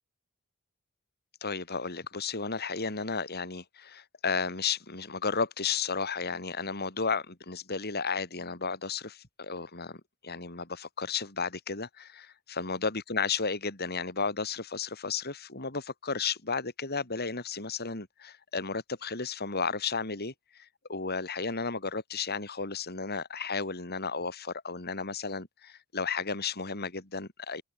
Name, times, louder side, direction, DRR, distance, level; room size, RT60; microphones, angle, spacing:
voice 1, 1.4-27.6, left 5 dB, 50° left, 4.2 m, -33 dB
open air
head